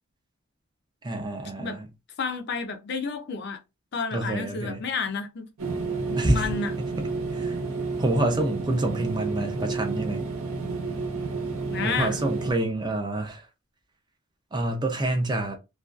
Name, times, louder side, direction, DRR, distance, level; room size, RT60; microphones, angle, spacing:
voice 1, 1.0-1.9 4.1-4.8 6.2-6.5 7.0-7.6 8.0-10.2 11.8-13.4 14.5-15.6, right 1 dB, 20° right, 0.4 m, -27 dB
voice 2, 2.2-3.6 3.9-5.8 6.1-6.7 11.6-12.2, left 5 dB, 50° left, 0.4 m, -31 dB
sound 1, 5.6-12.5, right 4 dB, 80° right, 0.8 m, -31 dB
2.4 x 2.3 x 2.3 m
head